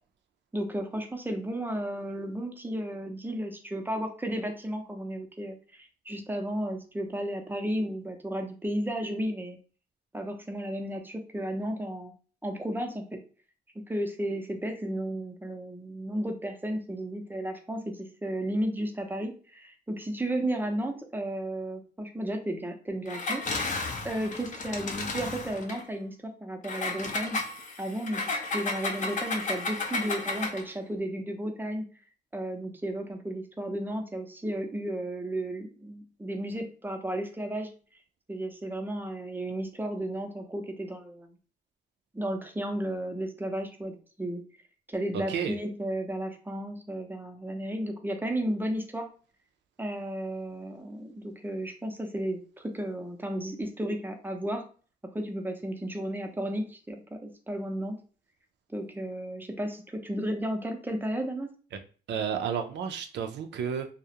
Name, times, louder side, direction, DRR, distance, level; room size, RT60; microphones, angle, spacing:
voice 1, 0.5-9.6 10.1-12.1 12.4-13.2 13.9-23.4 24.0-27.4 27.8-31.9 32.3-37.7 38.3-41.4 42.1-44.4 44.9-49.1 49.8-54.6 55.1-58.0 58.7-61.5, right 1 dB, 10° right, 4 dB, 0.5 m, -33 dB
Engine, 23.1-25.8 26.6-30.7, left 3 dB, 45° left, 0.5 m, -33 dB
voice 2, 45.1-45.6 62.1-63.9, right 7 dB, 85° right, 7 dB, 0.4 m, -31 dB
2.3 x 2.0 x 2.7 m, 0.39 s
cardioid pair, 85°, 18 cm